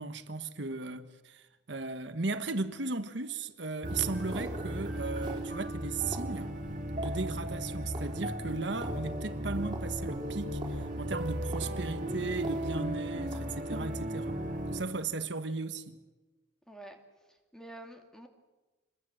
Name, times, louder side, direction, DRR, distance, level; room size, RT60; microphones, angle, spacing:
voice 1, 0.0-6.5 7.0-14.4 14.7-16.0, right 3 dB, 75° right, 1.4 m, -36 dB
sound 1, 3.8-15.0, right 2 dB, 25° right, 4.3 m, -48 dB
sound 2, 3.8-14.8, right 1 dB, 40° right, 3.1 m, -36 dB
voice 2, 16.7-17.0 17.5-18.3, right 1 dB, 5° left, 2.5 m, -47 dB
27.0 x 21.5 x 7.7 m
head